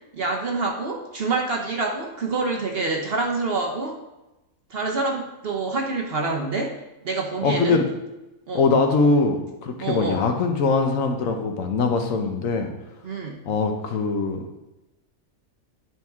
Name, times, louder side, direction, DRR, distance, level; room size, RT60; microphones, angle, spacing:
voice 1, 0.1-4.0 4.7-6.7 7.0-7.8 8.5-8.7 9.8-10.2 13.0-13.4, right 3 dB, 50° right, 1 dB, 0.9 m, -26 dB
voice 2, 7.4-7.9 8.5-12.7 13.5-14.6, left 4 dB, 70° left, 4 dB, 1.2 m, -22 dB
9.3 x 4.4 x 3.5 m, 0.99 s
omnidirectional pair, 1.5 m